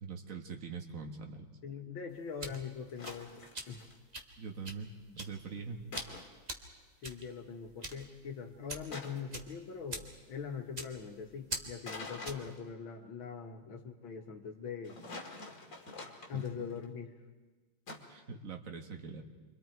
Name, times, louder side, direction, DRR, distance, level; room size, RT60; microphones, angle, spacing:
voice 1, 0.0-1.5 4.4-5.8 16.3-16.4 18.1-19.2, right 5 dB, 40° right, 2 dB, 1.9 m, -43 dB
voice 2, 1.6-3.8 7.0-15.0 16.3-17.1, left 6 dB, 70° left, 4 dB, 2.2 m, -42 dB
sound 1, 2.1-12.5, right 2 dB, 25° right, 1.3 m, -46 dB
sound 2, 2.9-4.0 5.9-6.4 8.9-9.4 11.8-12.6 14.8-16.8 17.9-18.2, left 3 dB, 40° left, 2.4 m, -46 dB
29.5 x 24.5 x 4.6 m, 1.3 s
omnidirectional pair, 2.3 m